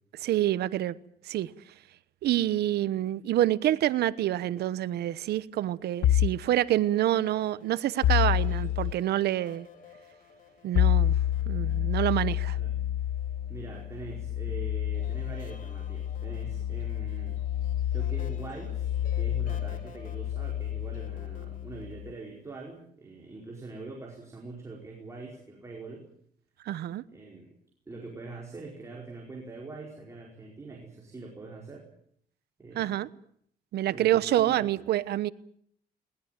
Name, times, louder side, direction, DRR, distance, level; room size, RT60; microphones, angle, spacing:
voice 1, 0.1-0.9 1.2-1.5 2.2-9.7 10.6-11.2 11.5-12.6 26.6-27.0 32.7-33.1 33.7-35.3, right 13 dB, 85° right, 1.1 m, -27 dB
sound 1, 6.0-6.5 8.0-9.0 10.7-22.1, left 11 dB, 90° left, 0.9 m, -29 dB
sound 2, 6.8-14.4 14.9-21.9, left 6 dB, 55° left, 2.9 m, -54 dB
voice 2, 13.5-17.4 17.9-18.9 19.1-26.1 27.1-27.5 27.9-31.8 32.6-32.9 33.9-34.7, right 3 dB, 20° right, 4.8 m, -43 dB
21.5 x 20.0 x 9.0 m
cardioid pair, 165°, 16 cm